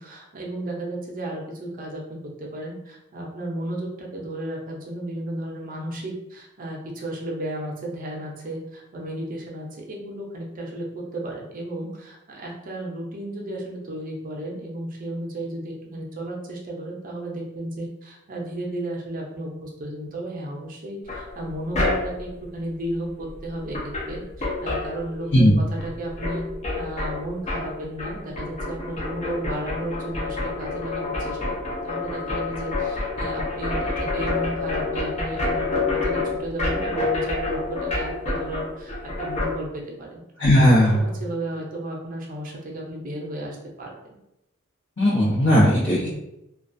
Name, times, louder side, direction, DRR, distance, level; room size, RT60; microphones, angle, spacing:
voice 1, 0.0-26.4 26.8-40.2 41.2-44.2, right 1 dB, 40° right, -1 dB, 0.5 m, -33 dB
sound 1, 21.1-22.3 23.4-23.5 23.7-25.5 25.8-39.5, left 2 dB, 35° left, 0.6 m, -28 dB
voice 2, 40.4-41.1 45.0-46.1, equal, 80° left, -10 dB, 0.9 m, -17 dB
2.3 x 2.2 x 2.5 m, 0.88 s
head